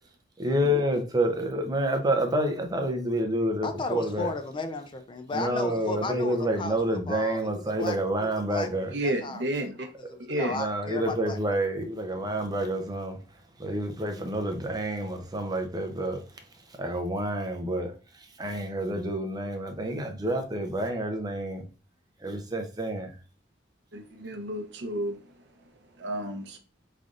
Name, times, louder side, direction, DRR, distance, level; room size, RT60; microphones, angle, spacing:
voice 1, 0.4-4.3 5.3-8.9 10.5-21.6 22.2-23.2, right 1 dB, 20° right, 0.6 m, -29 dB
voice 2, 3.6-9.7 10.1-11.4, left 3 dB, 25° left, 0.4 m, -35 dB
voice 3, 8.9-9.9 10.2-10.6 23.9-26.6, right 1 dB, 65° right, 0.7 m, -32 dB
3.8 x 3.3 x 2.4 m
head